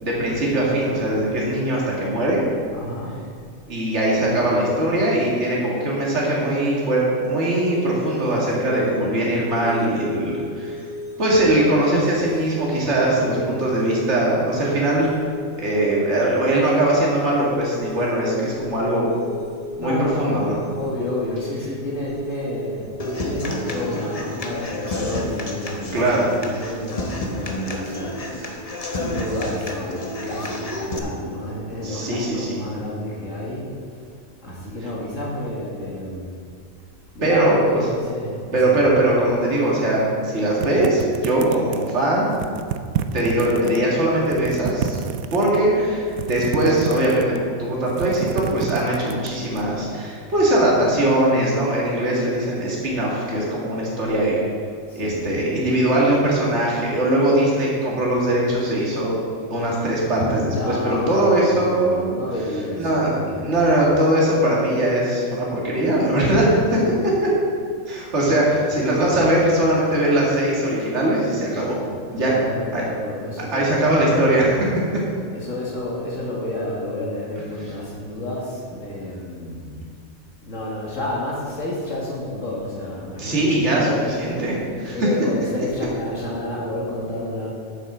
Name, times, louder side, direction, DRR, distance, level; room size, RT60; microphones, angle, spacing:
voice 1, 0.0-2.4 3.7-10.8 11.2-15.1 15.6-19.1 19.8-20.6 25.9-26.3 31.8-32.6 37.2-37.6 38.5-42.3 43.1-45.0 45.3-54.4 55.0-59.1 59.5-62.2 62.8-63.1 63.4-67.3 67.9-71.8 72.1-72.3 72.7-72.8 73.5-74.7 83.2-85.1, right 1 dB, 55° right, -4 dB, 2.3 m, -20 dB
voice 2, 2.7-3.2 13.1-13.6 19.8-20.4 20.7-22.9 23.2-28.2 28.5-33.7 34.4-36.3 37.1-38.8 54.9-55.4 60.5-64.1 72.2-74.0 75.3-79.8 80.4-84.5 84.8-87.5, left 1 dB, 65° left, -5 dB, 2.1 m, -30 dB
sound 1, 7.5-26.2, left 1 dB, 25° right, 2.8 m, -36 dB
Human voice / Acoustic guitar, 23.0-31.0, left 1 dB, 30° left, 1.0 m, -30 dB
sound 2, 40.6-42.0 42.3-43.8 44.2-45.6 46.1-47.5 47.8-49.6, right 8 dB, 85° right, 1.0 m, -29 dB
9.1 x 7.6 x 6.2 m, 2.2 s
omnidirectional pair, 1.4 m